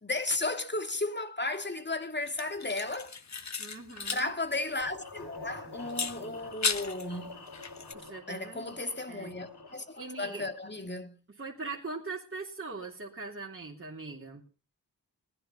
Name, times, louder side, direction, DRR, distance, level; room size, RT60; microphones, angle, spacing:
voice 1, 0.0-3.2 4.1-7.4 8.3-11.2, left 2 dB, 25° left, 2.4 m, -34 dB
sound 1, 2.3-4.3 4.6-4.7 5.9-7.1 7.5-7.9, left 5 dB, 40° left, 1.3 m, -35 dB
voice 2, 3.6-4.3 7.9-8.7 9.1-9.4 10.0-10.5 11.4-14.4, right 3 dB, 30° right, 3.3 m, -41 dB
sound 2, 4.8-10.8, left 3 dB, 75° left, 5.2 m, -47 dB
19.0 x 10.5 x 5.6 m
cardioid pair, 55°, 40 cm